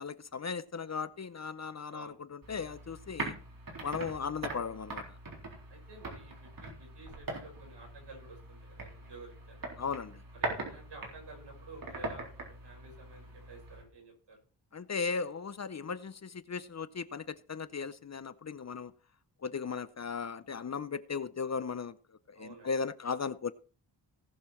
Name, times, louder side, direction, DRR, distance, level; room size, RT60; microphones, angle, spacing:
voice 1, 0.0-3.3 3.8-5.1 9.8-10.2 14.7-18.9 19.4-22.0 22.3-23.5, left 5 dB, 40° left, 0.6 m, -37 dB
sound 1, 2.4-13.8, right 2 dB, 50° right, 4.0 m, -42 dB
voice 2, 5.7-9.6 10.3-14.4 22.3-22.7, right 2 dB, 65° right, 5.5 m, -52 dB
18.0 x 6.6 x 4.4 m
wide cardioid pair, 110°, 44 cm